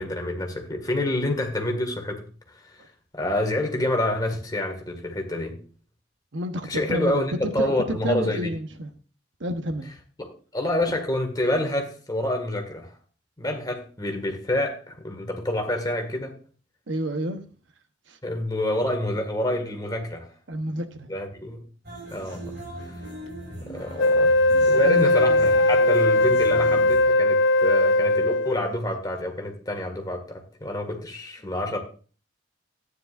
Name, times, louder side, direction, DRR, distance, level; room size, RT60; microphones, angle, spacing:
voice 1, 0.0-2.8 3.1-5.6 6.7-8.5 10.2-12.9 13.4-16.3 18.2-20.3 21.1-21.6 22.1-22.6 23.6-24.3 24.6-31.8, left 1 dB, 20° left, 1.9 m, -28 dB
voice 2, 6.3-8.9 9.4-9.9 16.9-17.4 18.1-18.2 20.5-21.1 24.8-25.3, equal, 75° right, 1.0 m, -30 dB
sound 1, 21.8-27.1, right 1 dB, 60° right, 5.8 m, -38 dB
Wind instrument woodwind instrument, 24.0-28.7, left 2 dB, 80° left, 0.4 m, -19 dB
13.0 x 9.8 x 2.5 m
head